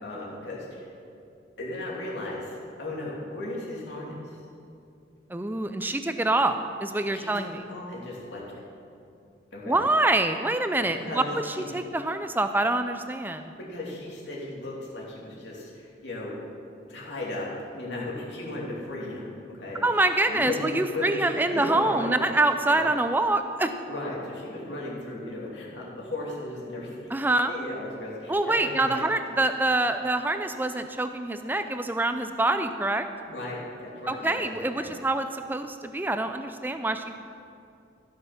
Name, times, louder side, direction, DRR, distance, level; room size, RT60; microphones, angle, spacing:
voice 1, 0.0-0.9 1.6-4.4 7.1-8.4 9.5-9.9 10.8-11.7 13.5-16.4 16.9-17.5 17.7-19.8 20.3-22.2 22.6-22.8 23.9-27.1 27.5-29.1 33.3-34.4 34.7-34.9, left 1 dB, 75° left, -4 dB, 2.7 m, -36 dB
voice 2, 5.3-7.6 9.7-13.5 19.8-23.7 27.1-27.6 28.3-33.1 34.1-37.2, right 2 dB, 10° right, 8 dB, 0.4 m, -26 dB
14.5 x 6.6 x 5.9 m, 2.5 s
head